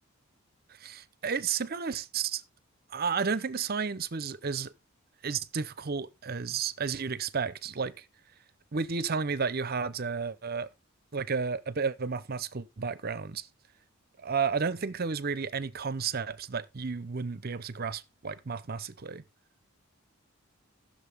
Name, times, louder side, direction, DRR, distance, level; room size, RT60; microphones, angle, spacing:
voice 1, 0.7-2.4 2.9-4.7 5.2-8.0 8.7-10.7 11.1-13.5 14.2-19.2, right 5 dB, 45° right, 0.7 m, -32 dB
15.0 x 6.5 x 3.5 m
head